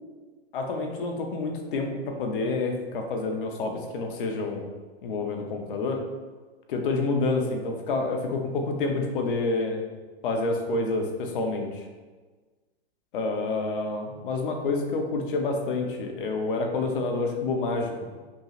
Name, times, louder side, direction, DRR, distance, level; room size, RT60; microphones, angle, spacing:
voice 1, 0.5-4.7 5.0-6.0 6.7-9.8 10.2-11.7 13.1-18.1, left 3 dB, 55° left, 3 dB, 0.8 m, -28 dB
5.4 x 3.1 x 2.4 m, 1.3 s
hypercardioid pair, 155°, 32 cm